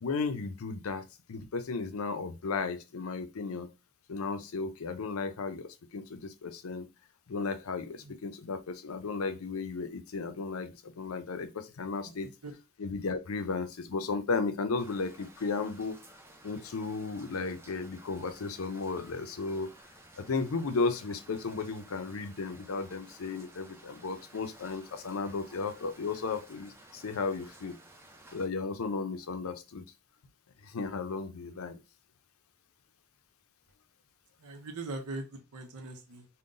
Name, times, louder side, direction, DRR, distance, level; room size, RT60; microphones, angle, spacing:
voice 1, 0.0-3.7 4.1-6.9 7.3-12.3 12.8-16.0 16.4-19.7 20.2-27.7 28.3-29.8 30.6-31.8, left 4 dB, 70° left, 0.5 m, -34 dB
sound 1, 14.8-28.5, right 1 dB, 10° right, 0.5 m, -55 dB
voice 2, 34.4-36.3, right 2 dB, 90° right, 0.7 m, -41 dB
3.8 x 2.2 x 3.7 m
head